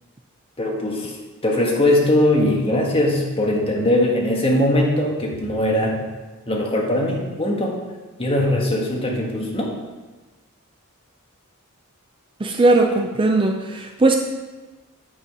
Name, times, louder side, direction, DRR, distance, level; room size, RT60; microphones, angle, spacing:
voice 1, 0.6-1.1 1.4-6.0 6.5-7.7 8.2-9.7, left 1 dB, 25° left, -1 dB, 1.6 m, -20 dB
voice 2, 12.4-14.2, right 2 dB, 25° right, 4 dB, 0.5 m, -18 dB
8.5 x 5.4 x 5.4 m, 1.2 s
head